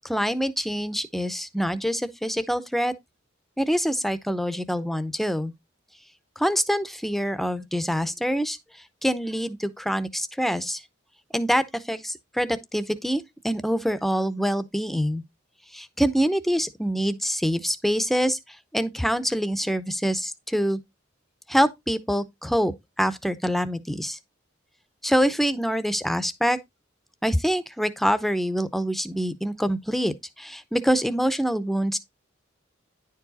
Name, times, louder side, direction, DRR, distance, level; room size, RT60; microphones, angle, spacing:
voice 1, 0.0-2.9 3.6-5.5 6.4-8.6 9.0-10.8 11.3-15.2 15.7-18.4 18.7-20.8 21.5-24.2 25.0-26.6 27.2-32.0, equal, ahead, 0.6 m, -25 dB
10.5 x 4.7 x 4.0 m
head